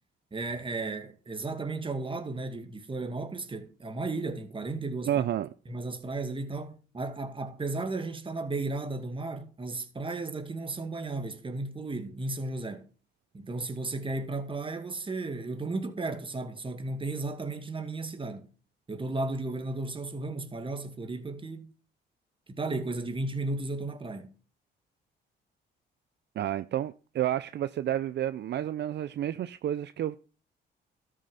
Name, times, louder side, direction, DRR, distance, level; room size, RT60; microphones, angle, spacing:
voice 1, 0.3-5.2 5.7-12.9 13.3-18.5 18.9-21.7 22.5-24.3, right 2 dB, 25° right, 2.1 m, -34 dB
voice 2, 5.1-5.5 26.4-30.2, right 11 dB, 60° right, 0.6 m, -30 dB
13.0 x 6.4 x 5.6 m
cardioid pair, 90°, 20 cm